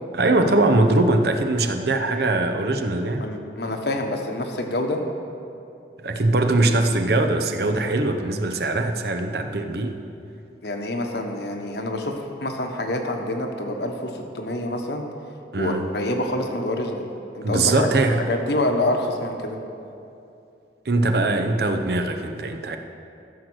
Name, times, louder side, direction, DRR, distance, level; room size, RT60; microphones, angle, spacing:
voice 1, 0.1-3.2 6.0-10.0 15.5-15.9 17.4-18.3 20.8-22.8, right 2 dB, 60° right, 6 dB, 0.7 m, -21 dB
voice 2, 3.2-5.0 10.6-15.0 15.5-17.0 17.3-17.9 18.3-19.6, left 1 dB, 65° left, 3 dB, 1.1 m, -27 dB
14.5 x 6.5 x 6.3 m, 2.6 s
head